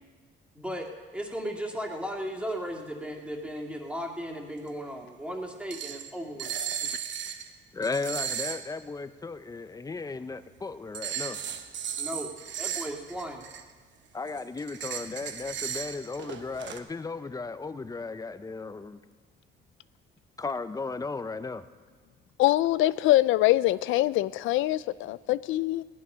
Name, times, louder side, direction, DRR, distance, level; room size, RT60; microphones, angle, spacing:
voice 1, 0.5-0.9 1.1-6.5 12.0-12.3 12.6-13.4, equal, 5° right, 0 dB, 2.3 m, -36 dB
sound 1, 4.7-4.8 5.7-6.1 6.4-7.5 7.8-8.6 10.9-13.7 14.3-16.8, right 9 dB, 65° right, 1.0 m, -35 dB
voice 2, 7.7-11.4 14.1-19.0 20.4-21.7, left 4 dB, 20° left, 12 dB, 0.7 m, -35 dB
voice 3, 22.4-25.8, left 16 dB, 85° left, 17 dB, 0.4 m, -24 dB
16.5 x 11.0 x 5.6 m, 1.5 s
cardioid pair, 90°, 20 cm